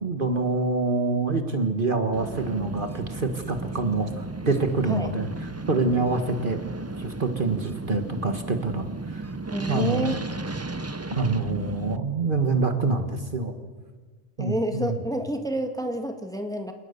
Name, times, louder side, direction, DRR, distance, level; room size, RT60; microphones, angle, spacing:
voice 1, 0.0-5.3 5.7-6.6 7.0-9.3 9.7-10.2 11.1-13.6 14.4-15.0, right 3 dB, 45° right, 7 dB, 1.7 m, -26 dB
sound 1, 2.1-12.0, right 2 dB, 20° right, 0.4 m, -35 dB
voice 2, 9.5-10.2 14.4-16.7, right 1 dB, 5° left, 5 dB, 1.7 m, -29 dB
28.5 x 19.0 x 6.8 m, 1.4 s
omnidirectional pair, 1.3 m